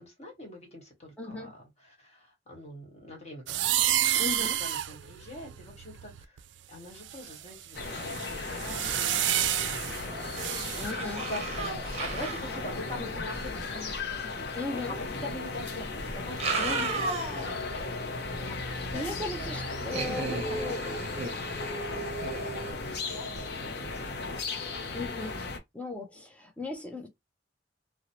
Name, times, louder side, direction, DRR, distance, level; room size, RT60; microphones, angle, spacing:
voice 1, 0.0-3.7 4.0-4.2 4.6-6.4 6.7-17.9 18.2-18.6 18.9-19.5 20.0-20.5 20.8-21.2 21.7-22.3 22.7-24.8 25.2-25.5 26.1-26.2, left 1 dB, 40° left, 1.3 m, -44 dB
voice 2, 1.2-1.5 4.2-4.6 10.7-11.3 14.5-14.9 16.6-17.0 18.9-20.8 24.9-25.4 25.7-27.1, left 2 dB, 10° left, 0.5 m, -37 dB
sound 1, 3.5-6.4 7.0-10.9, right 12 dB, 75° right, 0.3 m, -30 dB
sound 2, 7.7-25.6, left 3 dB, 65° left, 0.6 m, -36 dB
sound 3, 10.0-10.4 10.7-13.6 15.0-15.1 16.2-17.6 18.1-18.2 19.9-22.7, right 4 dB, 35° right, 0.7 m, -35 dB
2.6 x 2.0 x 2.9 m
head